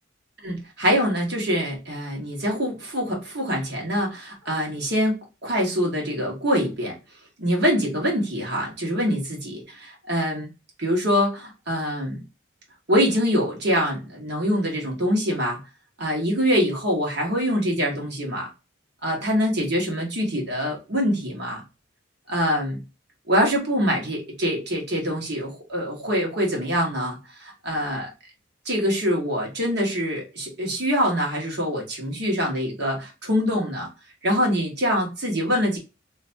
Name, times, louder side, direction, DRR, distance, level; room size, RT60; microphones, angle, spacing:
voice 1, 0.4-5.1 5.4-7.0 7.4-10.5 10.8-12.2 12.9-15.6 16.0-18.5 19.0-21.6 22.3-22.8 23.3-28.1 28.6-33.9 34.2-35.8, equal, 60° right, -1 dB, 1.7 m, -24 dB
3.3 x 3.2 x 2.7 m, 0.28 s
head